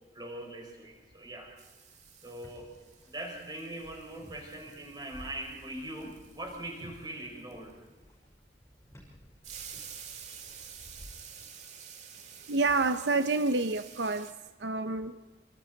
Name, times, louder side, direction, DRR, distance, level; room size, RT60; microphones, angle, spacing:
voice 1, 0.1-1.5 2.2-2.7 3.0-7.8, right 1 dB, 25° right, 1 dB, 4.9 m, -41 dB
sound 1, 0.9-1.3 1.6-7.9 9.4-14.3, right 7 dB, 40° right, 1.8 m, -50 dB
sound 2, 2.4-11.5, equal, 15° left, 5.8 m, -55 dB
voice 2, 12.5-14.3 14.6-15.2, right 3 dB, 80° right, 11 dB, 0.7 m, -28 dB
27.0 x 25.0 x 4.0 m, 1.2 s
head